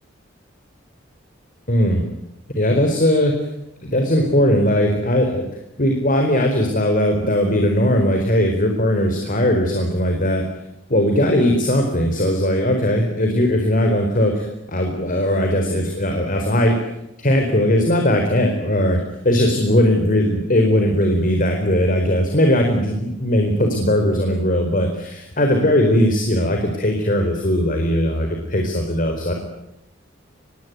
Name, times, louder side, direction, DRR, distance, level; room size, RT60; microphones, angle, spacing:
voice 1, 1.7-2.0 2.5-3.3 3.8-5.5 5.8-10.4 10.9-16.8 17.2-19.0 19.2-29.3, left 1 dB, 45° left, 4 dB, 4.4 m, -19 dB
26.0 x 21.5 x 9.4 m, 0.88 s
head